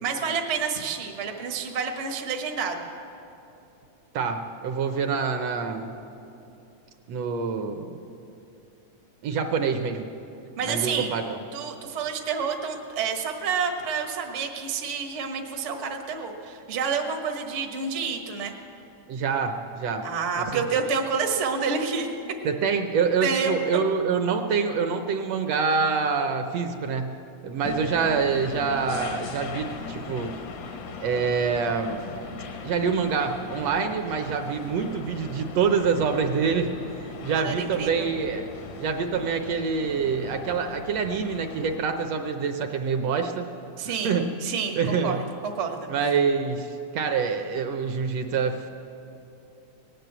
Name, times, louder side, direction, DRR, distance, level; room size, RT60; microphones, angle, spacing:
voice 1, 0.0-2.9 10.6-11.1 11.5-18.5 20.0-22.1 23.2-23.8 37.1-38.1 43.8-44.1 44.4-45.9, right 5 dB, 55° right, 3 dB, 0.8 m, -29 dB
voice 2, 4.1-5.9 7.1-8.0 9.2-10.1 10.7-11.4 19.1-20.1 20.4-20.5 22.5-27.2 27.4-30.4 31.0-32.0 32.6-36.7 37.2-38.5 38.8-43.5 43.9-44.3 44.8-45.2 45.9-48.7, right 5 dB, 70° right, 6 dB, 1.6 m, -26 dB
sound 1, 27.6-41.8, left 4 dB, 75° left, 2.3 m, -39 dB
18.5 x 9.1 x 8.0 m, 2.8 s
omnidirectional pair, 3.4 m